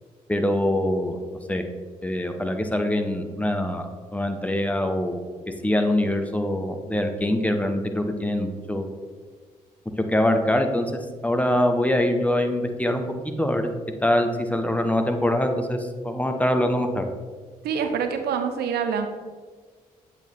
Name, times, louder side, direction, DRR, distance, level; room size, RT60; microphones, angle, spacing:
voice 1, 0.3-1.2 1.5-1.6 2.0-5.2 5.6-8.9 10.1-10.9 11.2-13.1 13.4-13.7 14.0-17.0, left 1 dB, 10° left, 5 dB, 0.8 m, -24 dB
voice 2, 17.6-19.1, right 6 dB, 60° right, 6 dB, 0.6 m, -26 dB
8.2 x 3.3 x 4.1 m, 1.5 s
hypercardioid pair, 40°, 18 cm